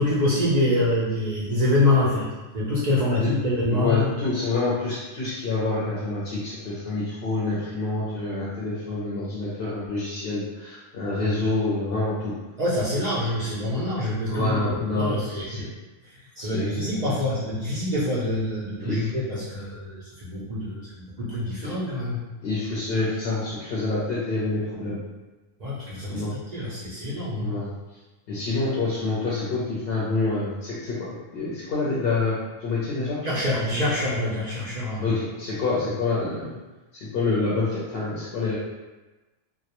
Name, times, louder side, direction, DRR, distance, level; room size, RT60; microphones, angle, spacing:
voice 1, 0.0-2.3 2.5-4.3 12.6-15.7 16.1-22.2 25.6-27.5 33.2-35.2, left 1 dB, 65° right, -8 dB, 0.4 m, -26 dB
voice 2, 3.7-12.4 14.3-15.6 16.4-17.2 18.8-19.1 21.6-21.7 22.4-25.0 26.1-26.3 27.4-27.7 28.3-31.1 31.3-33.2 33.7-33.8 35.0-36.5 36.9-38.6, left 3 dB, 60° left, -8 dB, 0.7 m, -27 dB
2.2 x 2.1 x 2.8 m, 1.2 s
omnidirectional pair, 1.3 m